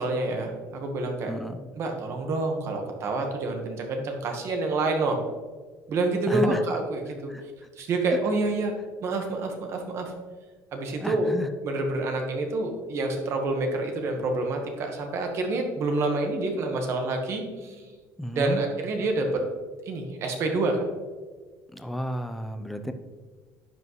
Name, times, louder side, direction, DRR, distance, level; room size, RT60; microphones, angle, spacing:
voice 1, 0.0-1.3 1.8-5.2 5.9-7.3 7.8-8.7 9.0-10.1 10.7-11.3 11.6-17.7 18.3-19.4 19.9-20.8, right 2 dB, 45° right, 3 dB, 1.3 m, -27 dB
voice 2, 1.3-1.7 6.3-6.6 7.3-7.4 10.9-11.5 17.7-17.9 18.2-18.6 21.7-22.9, equal, ahead, 7 dB, 0.5 m, -32 dB
10.5 x 5.7 x 3.1 m, 1.4 s
cardioid pair, 135°, 6 cm